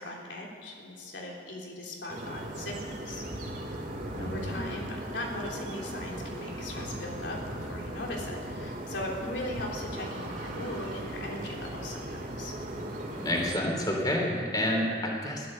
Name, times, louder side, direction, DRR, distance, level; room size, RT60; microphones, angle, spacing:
voice 1, 0.0-2.8 3.0-3.2 4.1-12.5, left 1 dB, 85° left, -1 dB, 3.3 m, -39 dB
sound 1, 2.1-13.6, right 1 dB, 45° right, 2.1 m, -38 dB
voice 2, 4.1-4.8 13.2-15.5, left 1 dB, 20° left, 0 dB, 3.0 m, -29 dB
15.5 x 12.5 x 7.5 m, 2.2 s
head